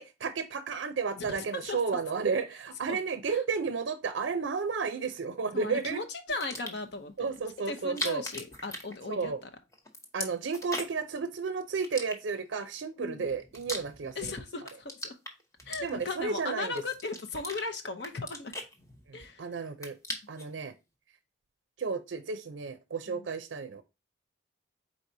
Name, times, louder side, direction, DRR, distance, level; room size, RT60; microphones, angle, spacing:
voice 1, 0.0-6.0 7.2-8.2 9.1-9.4 10.1-14.4 15.8-16.7 19.1-20.0 20.3-20.7 21.8-23.8, right 5 dB, 75° right, 10 dB, 0.5 m, -32 dB
voice 2, 1.2-1.8 2.9-3.0 3.3-3.4 5.5-7.3 7.7-9.3 13.0-13.3 14.2-15.2 15.7-18.5 19.1-19.4 23.1-23.3, left 3 dB, 60° left, 6 dB, 0.7 m, -37 dB
sound 1, 6.3-6.9 7.8-9.5 9.7-11.1 11.8-12.6 13.2-14.3 14.6-16.3 16.8-17.6 18.0-19.3 19.6-20.5, left 1 dB, 15° left, 0.8 m, -39 dB
4.7 x 4.1 x 2.6 m, 0.25 s
head